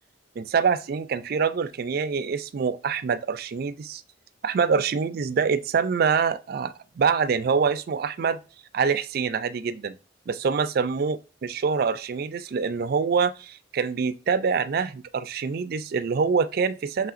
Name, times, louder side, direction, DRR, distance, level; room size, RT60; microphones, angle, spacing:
voice 1, 0.4-4.0 4.4-8.4 8.7-10.0 10.3-11.2 11.4-17.1, right 5 dB, 50° right, 0.3 m, -25 dB
5.7 x 3.3 x 2.4 m
head